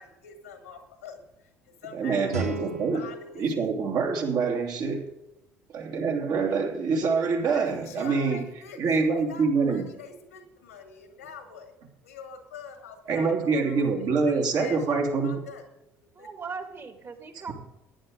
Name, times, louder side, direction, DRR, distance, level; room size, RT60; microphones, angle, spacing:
voice 1, 0.0-2.4 2.9-3.7 7.2-11.7 12.0-15.0 15.2-15.6 16.2-16.3, left 6 dB, 80° left, 7 dB, 2.0 m, -44 dB
voice 2, 1.9-3.1 3.4-5.1 5.7-8.4 8.8-9.8 13.1-15.3, right 4 dB, 55° right, 1 dB, 2.8 m, -25 dB
Guitar, 2.3-5.1, right 2 dB, 85° right, 1.4 m, -37 dB
voice 3, 16.1-17.5, right 5 dB, 35° right, 6 dB, 2.2 m, -38 dB
17.0 x 10.5 x 3.8 m, 0.89 s
figure-of-eight pair, 55°, 8 cm